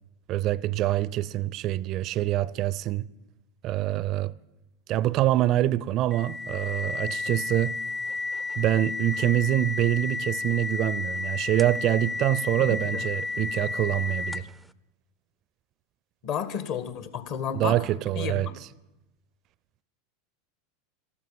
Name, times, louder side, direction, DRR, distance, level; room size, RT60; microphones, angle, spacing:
voice 1, 0.3-3.1 3.6-4.3 4.9-7.7 8.6-14.5 17.5-18.5, right 14 dB, 45° right, 0.6 m, -25 dB
sound 1, 6.1-14.6, left 3 dB, 5° left, 0.6 m, -32 dB
voice 2, 12.6-13.1 16.2-17.8 18.2-18.5, left 8 dB, 50° left, 1.7 m, -32 dB
13.5 x 13.5 x 7.4 m
figure-of-eight pair, 85°, 0 cm